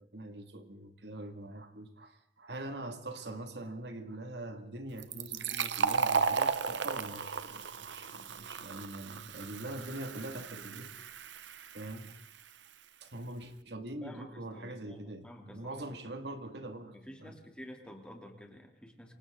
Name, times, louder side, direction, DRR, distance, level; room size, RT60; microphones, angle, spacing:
voice 1, 0.0-10.9 11.7-12.1 13.0-17.4, right 1 dB, 65° right, 7 dB, 2.3 m, -43 dB
Fill (with liquid), 5.0-12.4, right 5 dB, 85° right, 1.0 m, -35 dB
voice 2, 14.0-15.9 16.9-19.1, equal, 5° left, 2 dB, 3.0 m, -50 dB
28.5 x 24.5 x 3.9 m, 0.67 s
head